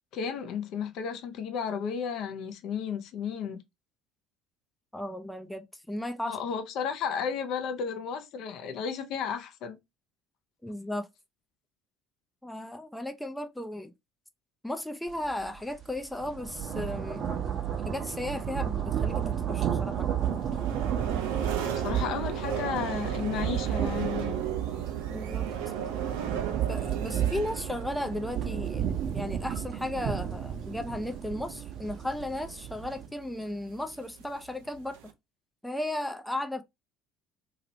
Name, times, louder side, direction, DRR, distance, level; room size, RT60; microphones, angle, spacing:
voice 1, 0.1-3.6 6.3-9.8 21.5-24.4, left 7 dB, 55° left, 0.6 m, -33 dB
voice 2, 4.9-6.4 10.6-11.1 12.4-13.9 14.6-17.4 17.8-20.4 25.1-25.5 26.7-35.1 35.6-36.6, left 1 dB, 5° left, 0.5 m, -35 dB
sound 1, 15.2-15.4 15.8-33.1, right 9 dB, 50° right, 0.8 m, -32 dB
sound 2, 20.2-35.1, right 9 dB, 70° right, 0.5 m, -37 dB
2.9 x 2.9 x 2.7 m
figure-of-eight pair, 60°, 0 cm